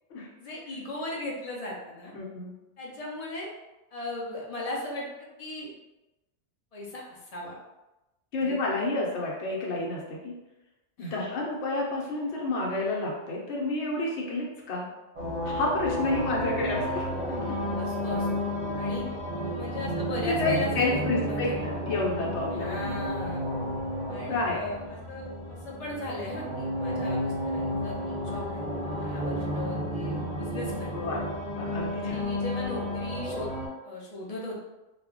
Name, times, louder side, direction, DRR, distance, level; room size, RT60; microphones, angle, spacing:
voice 1, 0.4-2.1 2.8-3.5 3.9-5.7 6.7-7.0 7.3-7.5 8.4-8.6 11.0-11.3 16.1-16.2 17.8-19.0 19.4-21.6 22.5-23.4 24.1-28.0 28.3-28.6 29.0-30.9 32.0-33.5 33.8-34.6, left 2 dB, 45° left, -3 dB, 0.5 m, -37 dB
voice 2, 2.1-2.5 8.3-10.3 11.0-14.8 15.5-17.6 20.2-22.8 23.1-23.2 24.3-24.7 29.2-29.3 30.9-31.2 31.5-32.2, left 2 dB, 70° left, -2 dB, 1.0 m, -30 dB
sound 1, 15.2-33.7, equal, 40° right, 0.7 m, -32 dB
2.4 x 2.1 x 3.6 m, 1.0 s
omnidirectional pair, 1.2 m